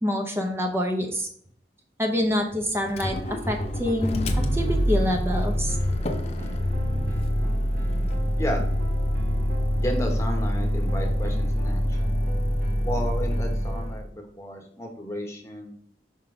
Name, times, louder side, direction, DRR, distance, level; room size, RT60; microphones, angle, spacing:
voice 1, 0.0-1.3 2.0-5.8, left 1 dB, 15° right, 3 dB, 0.7 m, -26 dB
Motor vehicle (road), 2.9-14.1, equal, 35° left, 0.7 m, -25 dB
sound 1, 4.3-13.9, right 1 dB, 55° right, 1.3 m, -42 dB
voice 2, 9.8-12.2 12.8-15.7, equal, 15° left, 2 dB, 1.1 m, -33 dB
5.8 x 3.8 x 4.9 m, 0.62 s
head